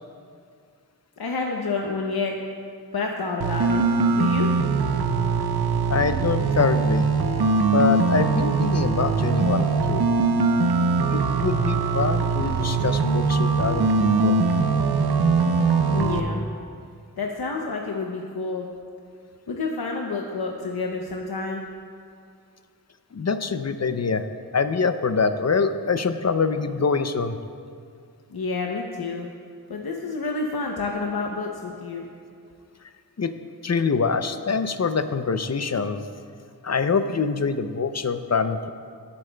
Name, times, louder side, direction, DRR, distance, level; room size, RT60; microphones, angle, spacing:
voice 1, 1.2-2.4 2.9-3.8 4.1-4.5 15.9-16.4 17.2-18.7 19.5-21.6 28.3-29.3 29.7-32.1, left 3 dB, 80° left, 1 dB, 0.7 m, -29 dB
sound 1, 3.4-16.2, right 4 dB, 90° right, 0.6 m, -22 dB
voice 2, 5.9-7.1 7.7-10.0 11.1-14.4 23.1-24.2 24.5-27.4 33.2-33.3 33.6-36.1 36.6-38.7, left 5 dB, 45° left, 10 dB, 0.5 m, -24 dB
16.5 x 8.5 x 2.2 m, 2.3 s
wide cardioid pair, 45°, 37 cm